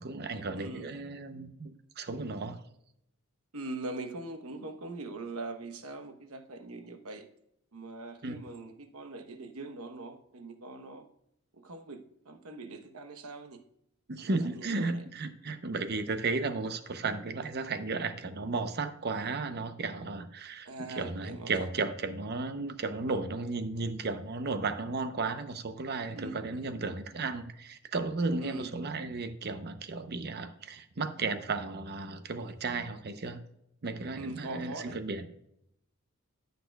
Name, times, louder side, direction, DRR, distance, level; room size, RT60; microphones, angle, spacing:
voice 1, 0.0-2.6 8.2-8.3 14.1-33.4 33.8-35.3, right 3 dB, 50° right, 9 dB, 0.7 m, -34 dB
voice 2, 0.5-0.9 3.5-7.2 7.7-11.0 11.5-12.0 12.2-13.6 14.2-15.0 20.6-21.5 26.1-26.7 28.4-28.7 34.2-35.0, right 2 dB, 80° right, 7 dB, 1.0 m, -42 dB
15.0 x 6.7 x 2.3 m, 0.77 s
head